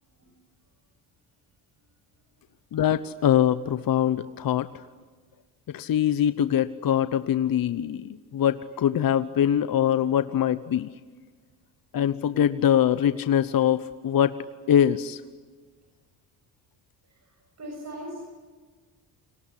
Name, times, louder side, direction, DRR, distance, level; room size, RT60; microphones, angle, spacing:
voice 1, 2.7-4.8 5.7-10.9 11.9-14.4 14.7-15.2, left 10 dB, 50° left, 12 dB, 1.0 m, -23 dB
voice 2, 17.1-18.2, equal, 35° right, 1 dB, 7.1 m, -39 dB
29.5 x 20.0 x 10.0 m, 1.5 s
supercardioid pair, 70°, 44 cm